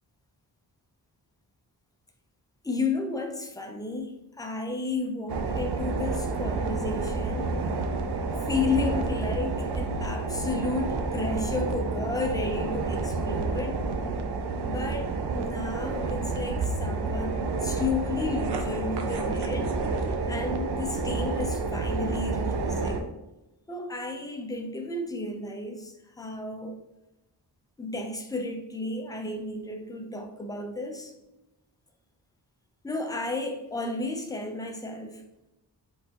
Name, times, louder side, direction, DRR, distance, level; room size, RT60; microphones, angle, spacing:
voice 1, 2.6-7.6 8.4-13.8 14.6-19.8 20.3-23.1 23.7-26.8 27.8-31.1 32.8-35.2, left 3 dB, 10° left, 3 dB, 0.6 m, -32 dB
sound 1, 5.3-23.0, right 3 dB, 75° right, 0.6 m, -29 dB
4.3 x 3.9 x 2.9 m, 0.94 s
wide cardioid pair, 120°, 40 cm